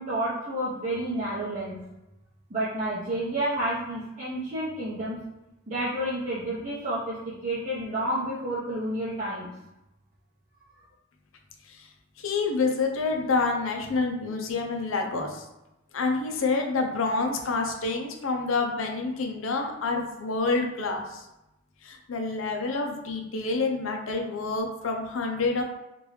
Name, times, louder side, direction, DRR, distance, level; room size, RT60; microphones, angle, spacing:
voice 1, 0.0-1.8 2.5-5.2 5.7-9.5, right 1 dB, 35° right, -10 dB, 0.8 m, -30 dB
voice 2, 12.2-15.5 15.9-21.3 21.8-25.6, left 3 dB, 75° left, 2 dB, 0.6 m, -28 dB
3.1 x 2.5 x 3.2 m, 0.93 s
head